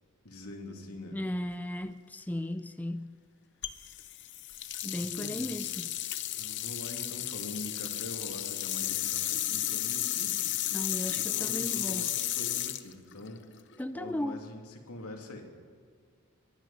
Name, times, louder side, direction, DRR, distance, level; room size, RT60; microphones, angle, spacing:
voice 1, 0.2-1.2 4.9-5.7 6.4-10.4 10.6-10.8 11.1-13.5 13.9-15.5, left 1 dB, 80° left, 2.7 m, -44 dB
voice 2, 1.1-3.2 4.8-5.9 10.7-12.0 13.8-14.4, left 1 dB, 5° left, 0.4 m, -36 dB
sound 1, 3.6-13.8, left 13 dB, 55° left, 0.8 m, -33 dB
22.0 x 11.5 x 5.6 m
head